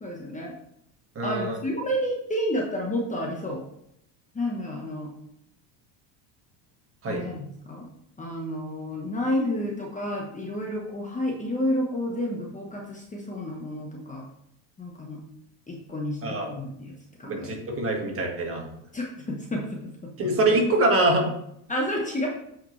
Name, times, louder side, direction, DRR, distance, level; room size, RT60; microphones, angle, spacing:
voice 1, 0.0-0.5 1.2-3.6 4.3-5.1 7.1-7.9 8.2-14.3 14.8-15.2 15.7-16.9 17.2-17.5 18.9-20.1 21.7-22.3, left 1 dB, 15° left, 0 dB, 1.1 m, -30 dB
voice 2, 1.1-1.6 7.0-7.2 16.2-16.5 17.2-18.7 20.2-21.3, right 2 dB, 30° right, 0 dB, 1.7 m, -24 dB
8.5 x 5.0 x 3.2 m, 0.75 s
cardioid pair, 130°, 46 cm